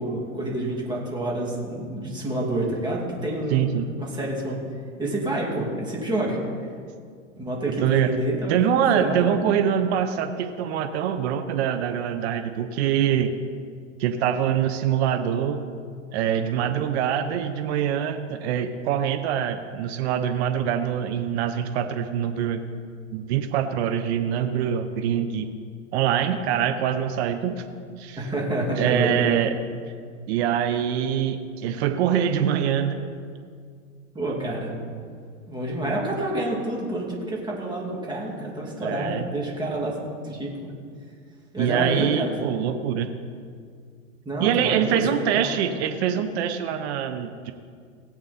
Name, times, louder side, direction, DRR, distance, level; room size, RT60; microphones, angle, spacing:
voice 1, 0.0-3.6 4.0-4.6 5.0-6.4 7.4-9.4 28.2-29.3 34.1-34.7 35.5-40.0 40.2-40.7 41.5-42.3 44.3-45.5, right 1 dB, 10° right, -3 dB, 2.6 m, -28 dB
voice 2, 3.5-3.9 7.6-8.1 8.5-13.3 14.0-15.6 16.1-22.6 23.1-25.5 25.9-27.6 28.0-28.2 28.8-29.5 30.3-33.0 38.8-39.3 41.6-43.1 44.4-47.5, right 9 dB, 50° right, 8 dB, 0.9 m, -24 dB
18.0 x 8.2 x 4.3 m, 2.1 s
hypercardioid pair, 120°, 40 cm